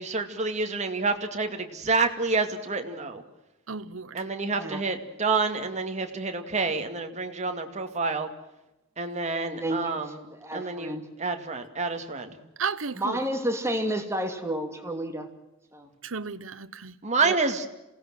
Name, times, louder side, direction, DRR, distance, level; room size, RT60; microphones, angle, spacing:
voice 1, 0.0-3.2 4.1-8.3 9.0-10.2 10.5-12.4 17.0-17.6, right 4 dB, 35° right, 2.3 m, -28 dB
voice 2, 3.7-4.2 12.6-13.2 16.0-16.9, right 5 dB, 75° right, 1.0 m, -33 dB
voice 3, 4.5-4.8 9.5-11.0 12.9-15.3 15.7-15.9 17.2-17.4, right 1 dB, 15° right, 2.8 m, -31 dB
27.5 x 18.0 x 7.7 m
head